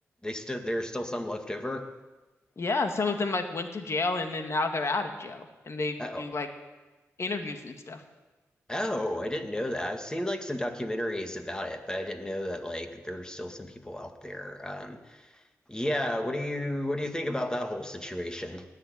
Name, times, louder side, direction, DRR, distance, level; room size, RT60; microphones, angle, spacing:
voice 1, 0.2-1.9 6.0-6.2 8.7-15.3 15.7-18.6, left 1 dB, 15° left, 5 dB, 2.1 m, -33 dB
voice 2, 2.6-6.5 7.2-8.0, left 3 dB, 50° left, 6 dB, 1.9 m, -30 dB
18.0 x 6.8 x 9.6 m, 1.1 s
cardioid pair, 50°, 6 cm